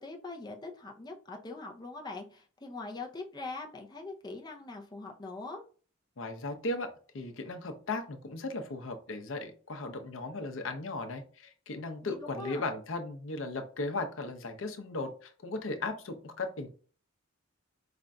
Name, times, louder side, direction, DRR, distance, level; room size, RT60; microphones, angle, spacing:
voice 1, 0.0-5.6 12.0-12.6, left 3 dB, 20° left, 2 dB, 0.5 m, -42 dB
voice 2, 6.2-16.7, left 2 dB, 75° left, 6 dB, 0.6 m, -37 dB
4.9 x 2.5 x 2.2 m, 0.40 s
head